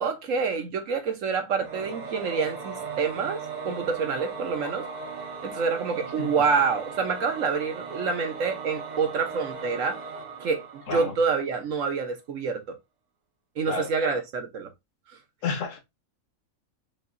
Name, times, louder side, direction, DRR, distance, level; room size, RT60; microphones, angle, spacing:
voice 1, 0.0-4.8 5.4-10.0 10.4-12.7 13.6-14.7, right 5 dB, 65° right, 1.3 m, -27 dB
Singing / Musical instrument, 1.6-11.6, right 5 dB, 40° right, 0.7 m, -38 dB
voice 2, 13.6-14.2 15.4-15.8, left 5 dB, 60° left, 1.3 m, -32 dB
5.9 x 2.7 x 2.6 m
omnidirectional pair, 1.5 m